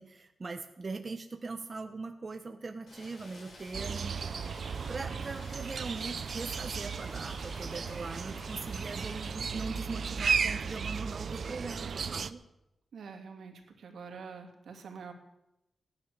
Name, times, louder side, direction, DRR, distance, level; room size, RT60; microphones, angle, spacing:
voice 1, 0.0-4.2 4.9-12.4, right 3 dB, 35° right, 5 dB, 1.1 m, -41 dB
Rain, 2.9-9.3, left 2 dB, 65° left, 7.7 m, -52 dB
sound 1, 3.7-12.3, right 6 dB, 60° right, 0.6 m, -35 dB
sound 2, 7.0-12.4, left 1 dB, 50° left, 1.5 m, -54 dB
voice 2, 12.9-15.1, right 5 dB, 85° right, 3 dB, 2.5 m, -46 dB
17.5 x 11.0 x 6.9 m, 0.90 s
wide cardioid pair, 120°, 0 cm